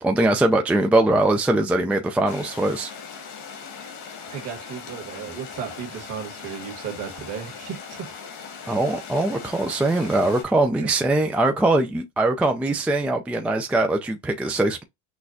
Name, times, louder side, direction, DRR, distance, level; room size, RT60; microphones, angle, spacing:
voice 1, 0.0-2.9 8.7-14.8, right 2 dB, 5° right, 0.3 m, -21 dB
sound 1, 2.3-10.4, left 6 dB, 85° left, 2.0 m, -39 dB
voice 2, 4.3-8.1 10.8-10.9, right 7 dB, 50° right, 1.6 m, -35 dB
6.2 x 2.3 x 2.6 m
supercardioid pair, 120°, 34 cm